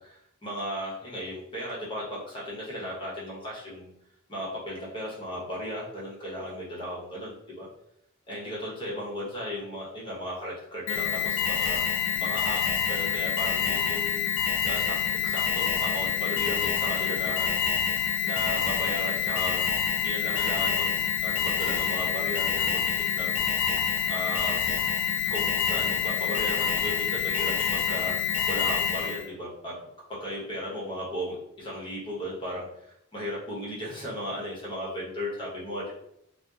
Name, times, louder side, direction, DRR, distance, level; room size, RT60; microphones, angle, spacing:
voice 1, 0.4-3.9 4.3-7.6 8.3-11.8 12.1-12.6 12.9-14.3 14.6-15.0 15.2-17.6 18.2-19.6 20.0-20.9 21.2-23.4 24.1-24.6 25.3-29.7 30.1-35.9, equal, 25° left, -5 dB, 0.9 m, -35 dB
Alarm, 10.9-29.3, left 8 dB, 65° left, 0.4 m, -27 dB
2.7 x 2.0 x 2.3 m, 0.76 s
head